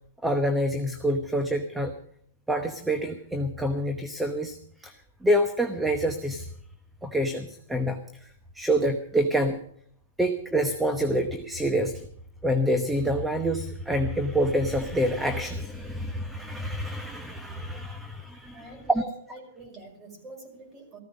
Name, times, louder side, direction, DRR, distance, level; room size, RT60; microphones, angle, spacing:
voice 1, 0.2-1.9 2.5-4.9 5.2-6.5 7.0-9.6 10.2-12.1 12.4-18.7 18.9-19.0, equal, 5° right, 7 dB, 1.0 m, -27 dB
voice 2, 18.5-21.0, right 2 dB, 20° right, 2 dB, 5.7 m, -45 dB
15.0 x 14.5 x 5.2 m, 0.65 s
hypercardioid pair, 145°, 0 cm